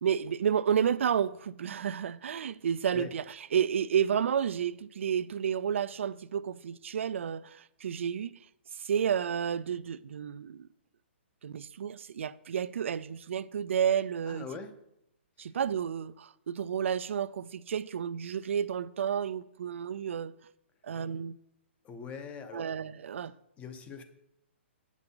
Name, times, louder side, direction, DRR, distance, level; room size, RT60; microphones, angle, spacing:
voice 1, 0.0-3.2 3.5-8.3 8.7-10.7 11.4-14.5 15.4-20.3 20.8-21.4 22.5-23.3, right 8 dB, 75° right, 0.3 m, -31 dB
voice 2, 14.3-14.7 15.4-15.5 21.8-22.7 23.6-24.0, left 6 dB, 20° left, 0.7 m, -42 dB
9.8 x 6.0 x 3.8 m
hypercardioid pair, 145°, 7 cm